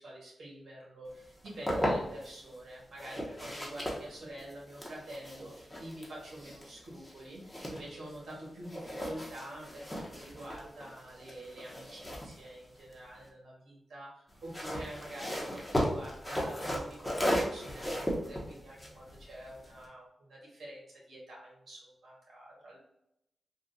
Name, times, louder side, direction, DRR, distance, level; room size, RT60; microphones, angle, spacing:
voice 1, 0.0-22.8, right 1 dB, 85° right, -4 dB, 1.4 m, -47 dB
sound 1, 1.2-2.4 3.0-8.4 8.6-13.3 14.3-19.9, equal, 10° left, 1.0 m, -36 dB
3.6 x 2.5 x 2.7 m, 0.82 s
cardioid pair, 70°, 0 cm